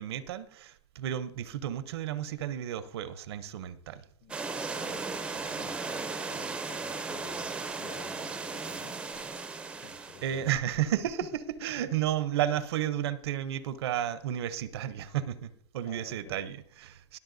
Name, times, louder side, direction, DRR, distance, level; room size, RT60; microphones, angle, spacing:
voice 1, 0.0-4.0 9.8-11.3 11.6-17.2, right 11 dB, 65° right, 0.7 m, -32 dB
sound 1, 4.3-10.4, right 4 dB, 5° right, 0.5 m, -36 dB
voice 2, 4.8-9.2 9.5-10.9 15.8-16.4, left 9 dB, 35° left, 0.8 m, -52 dB
21.5 x 7.2 x 2.6 m
supercardioid pair, 160°, 14 cm